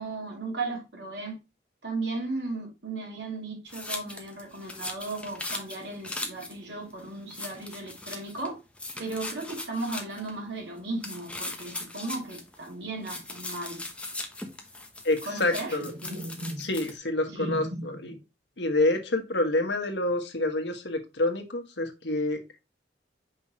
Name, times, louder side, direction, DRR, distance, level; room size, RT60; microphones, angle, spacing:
voice 1, 0.0-1.4 1.8-8.6 9.0-13.8 15.2-16.7 17.3-18.2, right 2 dB, 90° right, 2.7 m, -36 dB
sound 1, 3.7-6.6 6.9-7.0 7.3-8.5 8.8-10.3 11.0-12.7 13.0-16.9, left 2 dB, 5° left, 0.9 m, -39 dB
voice 2, 15.0-15.9 16.6-17.6 18.0-18.1 18.6-22.4, left 2 dB, 85° left, 1.4 m, -27 dB
5.8 x 5.4 x 3.0 m
head